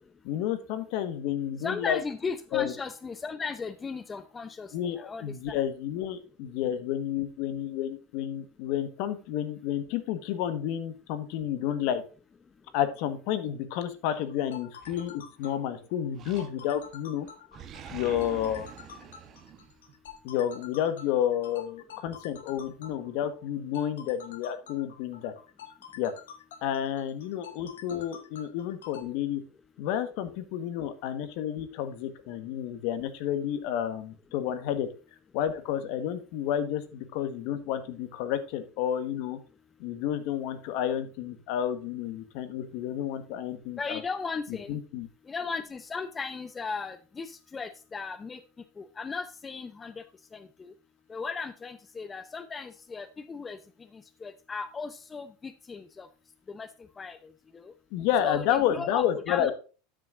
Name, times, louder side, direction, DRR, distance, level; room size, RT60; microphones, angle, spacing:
voice 1, 0.2-2.0 2.5-2.7 4.7-12.0 12.7-17.3 17.9-18.7 20.2-25.3 26.0-26.1 26.6-29.4 29.8-34.9 35.3-39.4 39.8-44.0 44.7-45.1 57.9-59.5, left 10 dB, 60° left, 11 dB, 1.4 m, -30 dB
voice 2, 1.6-5.3 43.8-44.8 45.3-48.4 48.8-50.0 50.3-50.7 51.1-53.6 53.9-56.1 56.5-56.7 57.0-57.7 58.2-59.5, left 5 dB, 20° left, 11 dB, 0.7 m, -36 dB
sound 1, 14.3-29.0, left 8 dB, 85° left, 1.4 m, -48 dB
Animal, 14.8-15.6 16.2-16.9 17.2-20.2, right 8 dB, 40° right, 1.2 m, -46 dB
12.5 x 6.4 x 2.6 m, 0.35 s
hypercardioid pair, 100°, 0 cm